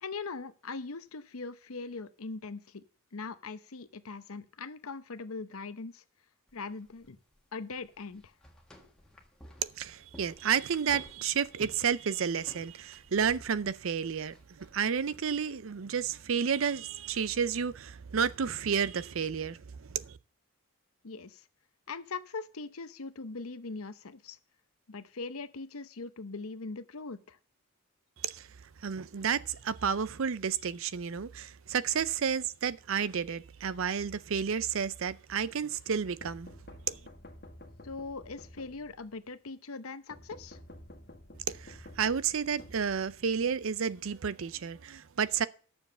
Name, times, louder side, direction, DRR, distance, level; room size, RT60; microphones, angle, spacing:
voice 1, 0.0-2.8 3.1-6.0 6.5-7.2 7.5-8.3 21.0-21.4 21.9-24.4 24.9-27.4 37.8-40.6, left 4 dB, 75° left, 0.8 m, -41 dB
sound 1, 6.5-15.4, equal, 5° left, 1.5 m, -55 dB
voice 2, 9.6-20.2 28.2-28.5 28.8-36.5 36.9-37.0 41.5-45.5, right 7 dB, 65° right, 0.5 m, -31 dB
sound 2, 36.2-39.2 40.1-43.4, left 1 dB, 45° left, 1.6 m, -51 dB
10.5 x 7.0 x 6.7 m
head